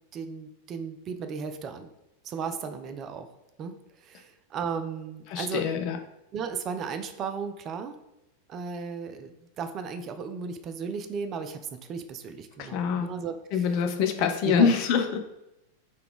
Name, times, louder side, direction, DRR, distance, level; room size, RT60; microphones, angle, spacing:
voice 1, 0.1-1.9 2.2-3.3 3.6-5.7 6.3-8.0 8.5-11.6 11.9-13.8 14.2-14.7, right 5 dB, 30° right, 9 dB, 0.3 m, -35 dB
voice 2, 5.3-6.0 12.6-13.1 13.5-15.2, left 6 dB, 45° left, 6 dB, 0.4 m, -25 dB
3.7 x 2.2 x 3.6 m, 0.88 s
figure-of-eight pair, 90°, 0 cm